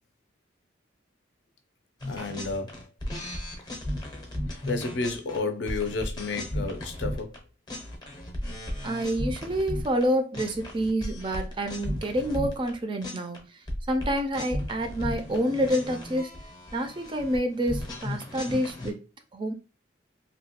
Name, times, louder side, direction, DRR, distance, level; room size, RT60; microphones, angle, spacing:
sound 1, 2.0-7.4 7.7-10.0 10.3-12.7 13.0-13.4 13.7-18.9, left 1 dB, 20° left, 0.6 m, -35 dB
voice 1, 2.1-2.8 4.7-7.4, left 3 dB, 65° left, 0.5 m, -31 dB
voice 2, 8.8-13.4 13.9-16.4 16.7-19.0 19.3-19.5, equal, 25° right, 0.3 m, -28 dB
2.8 x 2.2 x 2.8 m
head